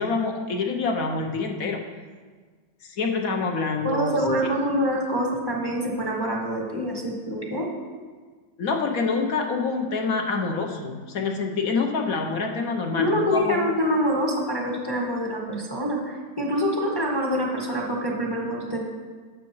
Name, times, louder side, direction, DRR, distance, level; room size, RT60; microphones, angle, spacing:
voice 1, 0.0-1.8 2.8-4.1 8.6-13.6, left 4 dB, 60° left, 2 dB, 1.1 m, -26 dB
voice 2, 3.8-7.7 13.0-18.8, equal, 15° left, -2 dB, 0.9 m, -25 dB
11.5 x 7.4 x 3.1 m, 1.5 s
omnidirectional pair, 1.9 m